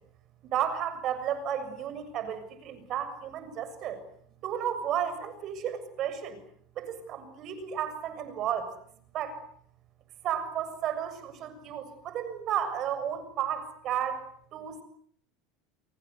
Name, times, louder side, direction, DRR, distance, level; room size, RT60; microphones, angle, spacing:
voice 1, 0.4-4.0 4.4-6.4 6.8-8.7 9.1-9.4 10.2-14.8, right 9 dB, 45° right, 12 dB, 6.9 m, -33 dB
29.0 x 23.5 x 8.3 m, 0.63 s
supercardioid pair, 130°, 0 cm